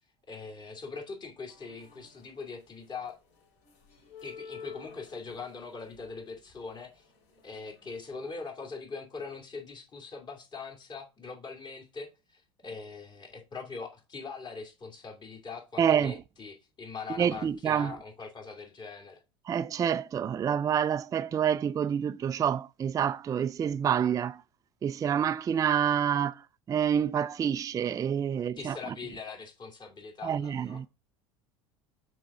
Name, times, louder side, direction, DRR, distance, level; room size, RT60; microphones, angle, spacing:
voice 1, 0.3-3.2 4.2-7.1 7.4-19.2 28.6-30.8, left 4 dB, 30° left, 2.4 m, -42 dB
sound 1, 1.5-2.6 3.1-8.4, left 5 dB, 65° left, 3.9 m, -51 dB
voice 2, 15.8-16.1 17.2-17.9 19.5-24.4 24.8-26.4 26.7-28.8 30.2-30.9, right 8 dB, 25° right, 0.3 m, -27 dB
6.1 x 4.9 x 4.1 m
hypercardioid pair, 90°, 14 cm